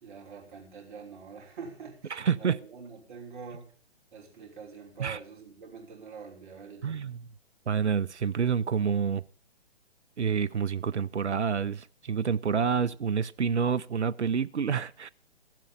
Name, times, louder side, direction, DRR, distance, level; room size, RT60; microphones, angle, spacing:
voice 1, 0.0-3.7 4.1-7.0, right 5 dB, 45° right, 3.3 m, -45 dB
voice 2, 2.1-2.6 5.0-5.2 6.8-7.2 7.7-9.2 10.2-15.1, right 6 dB, 90° right, 0.6 m, -28 dB
15.0 x 7.6 x 6.9 m
figure-of-eight pair, 135°, 33 cm